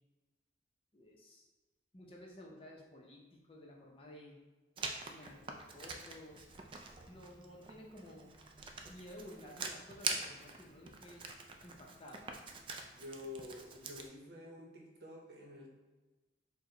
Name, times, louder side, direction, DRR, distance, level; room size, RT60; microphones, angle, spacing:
voice 1, 0.9-1.5 1.9-4.4 5.0-6.5 7.1-8.3 8.9-11.2 11.6-12.3, left 1 dB, 30° left, -1 dB, 0.6 m, -54 dB
Writing, 4.8-14.1, right 4 dB, 30° right, 0.3 m, -45 dB
voice 2, 13.0-15.7, left 2 dB, 65° right, -1 dB, 0.8 m, -49 dB
4.4 x 2.2 x 3.8 m, 1.2 s
head